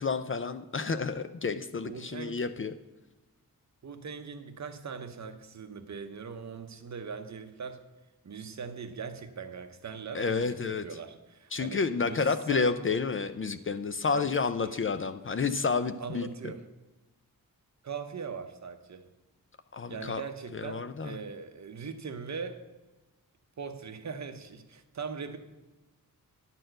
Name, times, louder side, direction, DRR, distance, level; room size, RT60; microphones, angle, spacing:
voice 1, 0.0-2.7 10.1-10.8 11.5-16.5 19.7-20.2 20.5-21.2, left 5 dB, 35° left, 10 dB, 0.4 m, -30 dB
voice 2, 1.9-2.5 3.8-7.8 8.2-12.8 14.1-14.3 16.0-16.6 17.8-19.1 19.9-22.7 23.6-25.4, right 5 dB, 50° right, 8 dB, 0.8 m, -40 dB
10.5 x 4.3 x 7.7 m, 1.1 s
wide cardioid pair, 130°, 35 cm